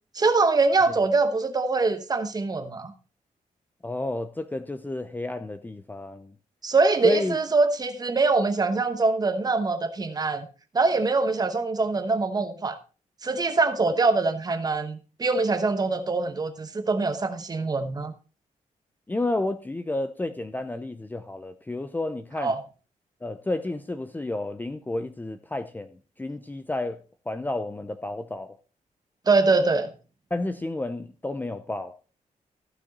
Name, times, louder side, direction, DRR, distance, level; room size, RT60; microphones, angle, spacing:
voice 1, 0.1-2.9 6.6-10.5 10.7-12.8 13.2-18.1 22.4-22.6 29.3-29.9, right 3 dB, 30° right, 1.0 m, -23 dB
voice 2, 3.8-6.3 7.0-7.4 19.1-22.6 23.2-27.0 27.3-28.6 30.3-31.9, left 2 dB, 15° left, 0.6 m, -31 dB
14.5 x 6.2 x 4.0 m
wide cardioid pair, 160°, 14 cm